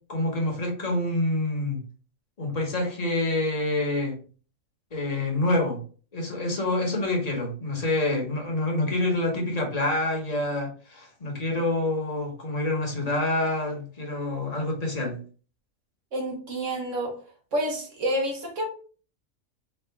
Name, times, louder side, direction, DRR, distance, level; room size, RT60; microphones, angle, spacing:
voice 1, 0.1-1.8 2.4-4.2 4.9-5.8 6.1-15.2, left 2 dB, 30° left, 1.1 m, -27 dB
voice 2, 16.1-17.2 17.5-18.6, right 1 dB, 60° right, 1.5 m, -28 dB
4.2 x 2.5 x 3.4 m
omnidirectional pair, 1.4 m